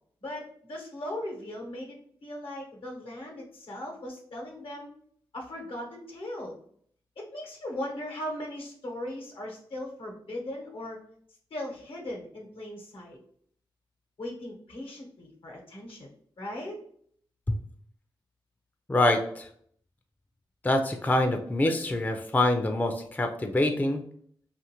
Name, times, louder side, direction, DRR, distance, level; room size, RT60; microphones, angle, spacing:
voice 1, 0.2-2.0 2.2-4.9 5.3-6.5 7.2-11.0 11.5-13.2 14.2-16.1 16.4-16.8, left 1 dB, 75° left, -1 dB, 0.9 m, -38 dB
voice 2, 18.9-19.5 20.6-24.0, left 1 dB, 15° left, 5 dB, 0.4 m, -25 dB
2.6 x 2.5 x 2.8 m, 0.62 s
cardioid pair, 45°, 9 cm